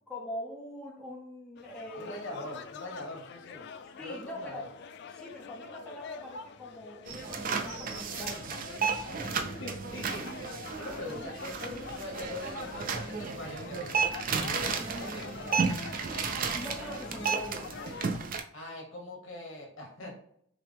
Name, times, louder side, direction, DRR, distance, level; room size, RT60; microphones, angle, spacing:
voice 1, 0.1-2.3 4.0-4.6 5.1-9.1 16.5-17.7, left 1 dB, 5° left, -2 dB, 0.7 m, -43 dB
sound 1, 1.6-18.2, left 5 dB, 55° left, 0.3 m, -45 dB
voice 2, 2.0-3.7 4.0-4.6 9.2-15.7 18.5-20.2, left 1 dB, 75° left, 0 dB, 1.3 m, -43 dB
sound 2, 7.1-18.4, right 5 dB, 45° right, 0.4 m, -33 dB
5.9 x 2.0 x 3.4 m, 0.69 s
head